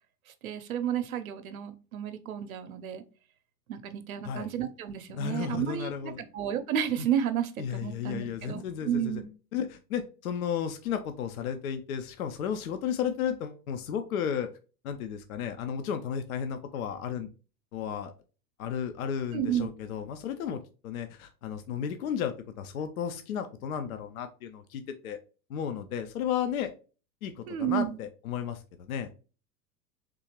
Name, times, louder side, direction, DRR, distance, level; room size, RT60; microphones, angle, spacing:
voice 1, 0.3-3.0 3.7-9.3 19.3-19.7 27.5-28.0, right 9 dB, 55° right, 9 dB, 0.7 m, -32 dB
voice 2, 5.1-6.2 7.6-9.2 9.5-14.5 14.8-17.3 17.7-18.1 18.6-25.2 25.5-26.7 27.2-29.1, left 8 dB, 60° left, 7 dB, 0.5 m, -33 dB
3.7 x 2.8 x 2.9 m, 0.35 s
figure-of-eight pair, 100°, 50 cm